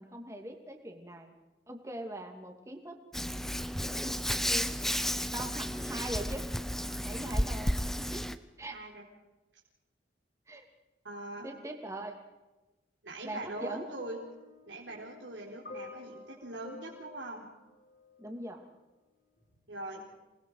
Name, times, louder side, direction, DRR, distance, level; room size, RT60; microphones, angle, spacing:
voice 1, 0.0-1.3 1.7-3.0 3.8-4.7 5.3-6.5 7.0-8.3 8.6-8.8 10.5-10.6 11.4-12.2 13.2-13.9 18.2-18.6, right 1 dB, 15° right, 3 dB, 2.7 m, -42 dB
Hands, 3.1-8.4, equal, ahead, 0.7 m, -32 dB
voice 2, 8.7-9.0 11.0-11.5 13.0-14.2 14.7-17.5 19.7-20.1, right 1 dB, 75° right, -3 dB, 4.2 m, -42 dB
sound 1, 13.4-18.5 19.4-19.6, left 3 dB, 50° left, 6.1 m, -51 dB
28.0 x 20.5 x 5.0 m, 1.1 s
head